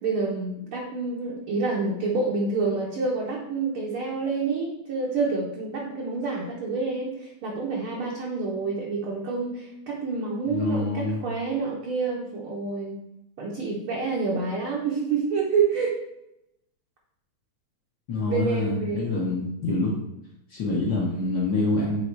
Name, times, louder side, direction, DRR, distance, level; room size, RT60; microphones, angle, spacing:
voice 1, 0.0-13.0 13.4-15.9 18.3-19.1, right 4 dB, 60° right, -3 dB, 1.5 m, -28 dB
voice 2, 10.5-11.2 18.1-20.0 20.5-22.0, left 2 dB, 55° left, -3 dB, 1.4 m, -26 dB
6.9 x 3.9 x 4.5 m, 0.85 s
omnidirectional pair, 3.3 m